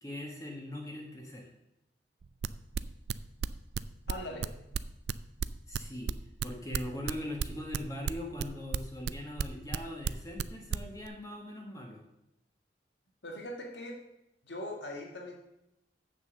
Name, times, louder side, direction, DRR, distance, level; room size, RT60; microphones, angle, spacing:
voice 1, 0.0-1.5 5.7-6.1 6.4-12.0, left 1 dB, 20° left, 0 dB, 1.3 m, -41 dB
sound 1, 2.2-5.8 6.1-9.8 10.0-10.4 10.7-11.1, right 6 dB, 65° right, 0.4 m, -32 dB
voice 2, 4.1-4.6 13.2-14.0 14.4-15.4, left 1 dB, 80° left, 1 dB, 1.7 m, -41 dB
7.7 x 6.8 x 6.6 m, 0.87 s
head